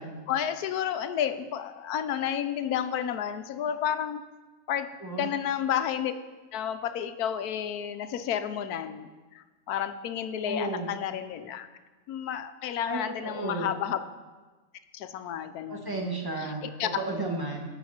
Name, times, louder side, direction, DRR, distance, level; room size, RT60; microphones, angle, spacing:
voice 1, 0.3-4.2 4.7-4.9 5.2-6.1 6.5-9.1 9.3-11.7 12.1-14.0 14.9-16.0 16.4-16.9, left 9 dB, 80° left, 10 dB, 1.2 m, -31 dB
voice 2, 5.0-5.3 10.5-10.9 12.8-13.7 15.7-16.6 17.0-17.6, right 2 dB, 15° right, 0 dB, 1.6 m, -33 dB
17.5 x 6.4 x 4.3 m, 1.3 s
omnidirectional pair, 1.6 m